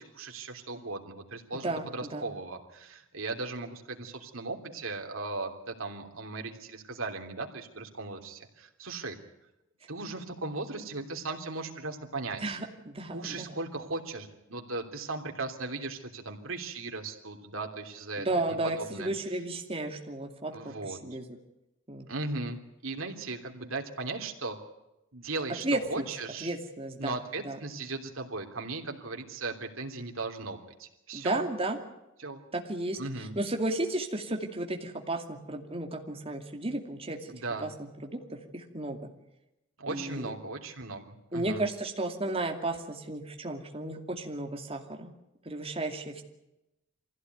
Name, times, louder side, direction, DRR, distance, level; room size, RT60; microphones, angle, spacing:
voice 1, 0.0-9.2 9.9-12.6 13.1-19.1 20.5-21.0 22.1-24.6 25.1-26.6 27.0-31.5 32.2-32.4 33.0-33.4 37.3-37.7 39.8-41.6, right 3 dB, 85° right, 3 dB, 3.1 m, -37 dB
voice 2, 1.5-2.2 12.4-13.6 18.2-21.3 21.9-22.1 25.6-26.1 26.4-27.2 27.4-27.6 31.1-31.8 32.5-37.3 37.6-39.1 39.9-40.3 41.3-45.1 45.4-46.2, right 2 dB, 30° right, 3 dB, 2.6 m, -34 dB
25.0 x 16.0 x 9.4 m, 0.92 s
head